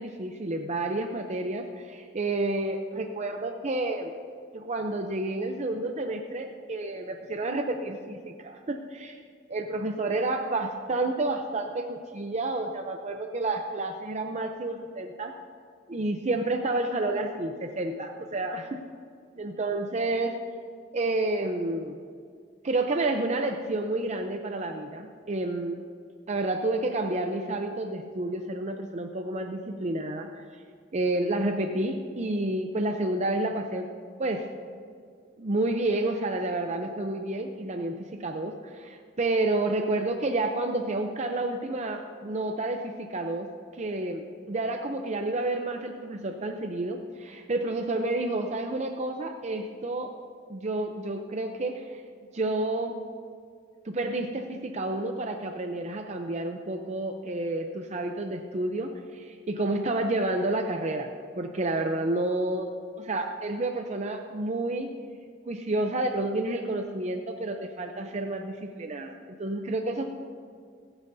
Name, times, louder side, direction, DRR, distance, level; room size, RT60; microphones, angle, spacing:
voice 1, 0.0-4.1 4.5-9.2 9.5-15.3 15.9-18.8 19.4-20.4 20.9-22.0 22.6-25.8 26.3-30.6 30.9-33.9 34.2-34.5 35.4-50.2 50.5-52.0 52.3-53.0 53.8-62.7 63.0-64.9 65.5-70.1, right 2 dB, 35° right, 4 dB, 0.6 m, -30 dB
25.5 x 9.0 x 2.7 m, 2.2 s
head